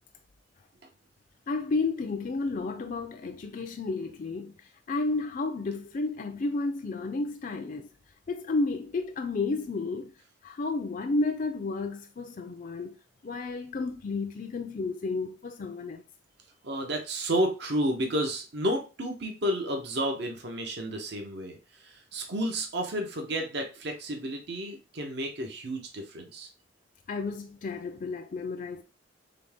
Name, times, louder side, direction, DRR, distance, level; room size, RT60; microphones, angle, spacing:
voice 1, 1.5-4.5 4.9-7.9 8.3-10.1 10.4-13.0 13.2-16.0 27.1-28.8, left 3 dB, 45° left, 0.4 m, -32 dB
voice 2, 16.6-26.5, right 1 dB, 65° right, 0.9 m, -31 dB
3.9 x 3.5 x 3.5 m
head